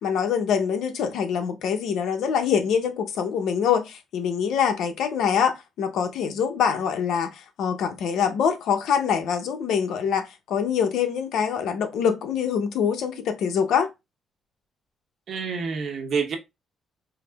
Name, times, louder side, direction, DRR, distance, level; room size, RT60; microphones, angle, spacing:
voice 1, 0.0-13.9, left 7 dB, 80° left, 0.8 m, -24 dB
voice 2, 15.3-16.4, right 5 dB, 55° right, 1.0 m, -27 dB
4.8 x 2.0 x 3.4 m
cardioid pair, 130°, 0 cm